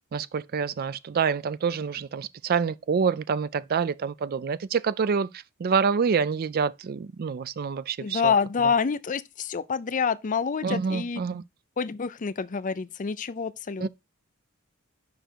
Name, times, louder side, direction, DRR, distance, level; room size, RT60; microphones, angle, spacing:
voice 1, 0.1-5.3 5.6-8.3 10.6-11.4 13.8-13.9, right 6 dB, 45° right, 0.4 m, -27 dB
voice 2, 8.0-11.2 11.8-13.9, left 6 dB, 35° left, 0.5 m, -27 dB
6.8 x 5.1 x 4.4 m
head